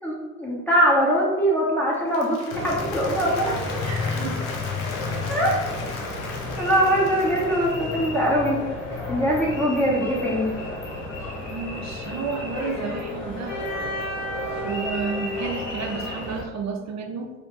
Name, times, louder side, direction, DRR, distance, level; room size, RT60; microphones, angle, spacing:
voice 1, 0.0-3.6 5.3-5.6 6.6-8.6 9.1-10.6, equal, 5° left, -5 dB, 1.0 m, -22 dB
Applause, 1.9-8.2, left 3 dB, 90° left, 0.6 m, -37 dB
sound 1, 2.5-16.4, left 2 dB, 75° left, 1.0 m, -31 dB
voice 2, 3.8-4.4 11.5-13.6 14.6-17.3, right 5 dB, 40° right, 3 dB, 0.7 m, -31 dB
3.3 x 2.9 x 3.0 m, 1.2 s
hypercardioid pair, 55°, 41 cm